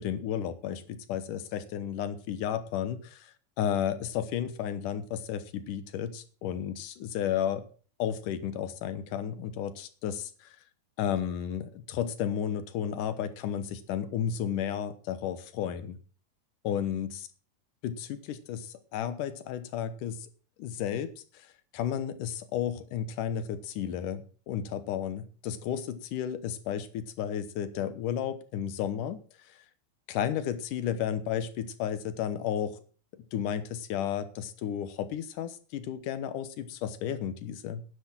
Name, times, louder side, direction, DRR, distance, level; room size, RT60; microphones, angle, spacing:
voice 1, 0.0-7.7 8.0-10.6 11.0-16.0 16.6-17.3 17.8-20.3 20.6-29.2 29.5-29.6 30.1-32.8 33.3-37.8, left 9 dB, 85° left, 12 dB, 2.7 m, -33 dB
10.0 x 9.9 x 6.1 m, 0.40 s
omnidirectional pair, 3.6 m